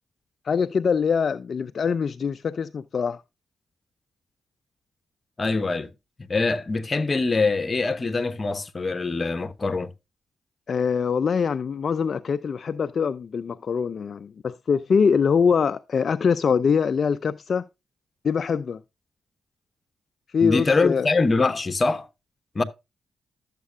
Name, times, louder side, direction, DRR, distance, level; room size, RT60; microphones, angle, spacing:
voice 1, 0.4-3.2 10.7-17.6 18.2-18.8 20.3-21.1, left 6 dB, 60° left, 0.4 m, -23 dB
voice 2, 5.4-5.9 6.3-9.9 20.4-22.1 22.5-22.6, left 3 dB, 40° left, 1.0 m, -23 dB
12.5 x 7.4 x 2.3 m
supercardioid pair, 55°, 0 cm